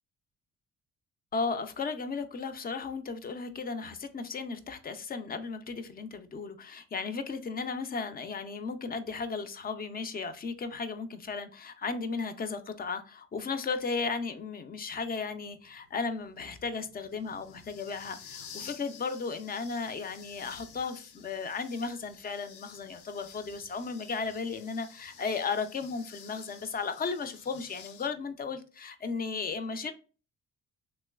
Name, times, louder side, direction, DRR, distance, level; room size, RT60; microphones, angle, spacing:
voice 1, 1.3-29.9, left 4 dB, 30° left, 0.4 m, -35 dB
sound 1, 15.1-28.1, left 7 dB, 80° left, 0.5 m, -52 dB
3.1 x 2.9 x 2.2 m
cardioid pair, 90°, 30 cm